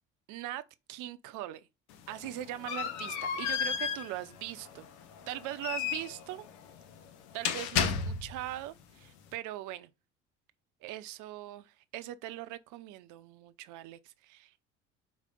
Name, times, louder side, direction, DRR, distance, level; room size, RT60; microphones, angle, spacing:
voice 1, 0.3-0.6 0.9-1.6 2.1-4.9 5.3-6.4 7.3-9.9 10.8-14.6, right 14 dB, 60° right, 0.7 m, -41 dB
sound 1, 1.9-8.5, left 7 dB, 70° left, 0.9 m, -34 dB
4.9 x 4.0 x 5.3 m
hypercardioid pair, 60°, 35 cm